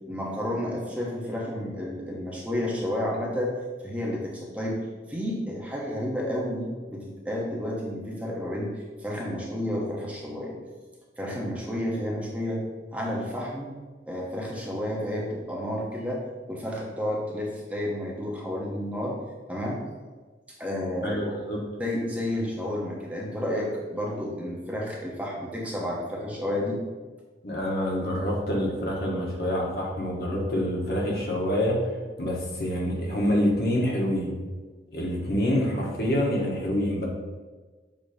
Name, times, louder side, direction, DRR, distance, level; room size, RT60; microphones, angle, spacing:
voice 1, 0.1-3.5 3.8-10.6 11.2-12.6 12.9-13.7 14.1-19.2 19.5-19.8 20.5-21.2 21.8-26.8, left 1 dB, 10° right, -3 dB, 1.0 m, -31 dB
voice 2, 21.0-21.6 27.4-31.8 32.2-34.3 34.9-37.1, equal, 55° left, -2 dB, 1.4 m, -26 dB
7.3 x 3.0 x 5.2 m, 1.4 s
head